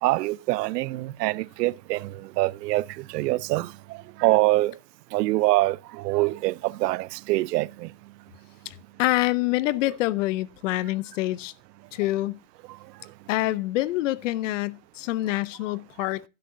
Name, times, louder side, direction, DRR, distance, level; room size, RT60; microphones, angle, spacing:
voice 1, 0.0-4.7 5.1-7.9, right 19 dB, 75° right, 0.6 m, -25 dB
voice 2, 8.7-11.5 11.9-12.4 13.3-16.2, left 17 dB, 50° left, 0.6 m, -26 dB
12.5 x 12.0 x 2.6 m
supercardioid pair, 165°, 49 cm